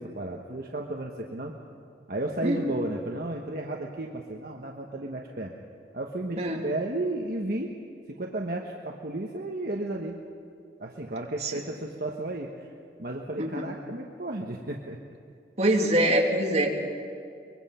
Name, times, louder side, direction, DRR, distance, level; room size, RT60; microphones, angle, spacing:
voice 1, 0.0-1.5 2.1-5.5 5.9-7.8 8.1-10.2 10.8-12.6 13.0-15.0, right 2 dB, 55° right, 0 dB, 1.3 m, -33 dB
voice 2, 15.6-16.7, right 1 dB, 35° right, 0 dB, 2.6 m, -24 dB
24.0 x 22.0 x 5.7 m, 2.4 s
head